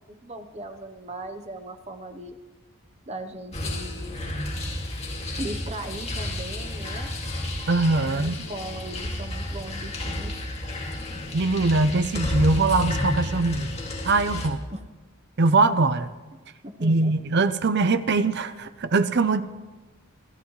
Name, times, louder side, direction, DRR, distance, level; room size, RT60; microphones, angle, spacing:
voice 1, 0.1-2.4 3.1-4.3 5.4-7.1 8.0-10.5 14.7-14.8 16.3-17.1, right 1 dB, 30° right, 6 dB, 1.0 m, -38 dB
sound 1, 3.5-14.5, left 1 dB, 30° left, 2.3 m, -31 dB
voice 2, 7.7-8.4 11.3-13.7 14.0-14.6 15.4-16.1 16.8-19.4, right 3 dB, 50° right, 11 dB, 0.7 m, -22 dB
27.5 x 14.0 x 3.2 m, 1.2 s
head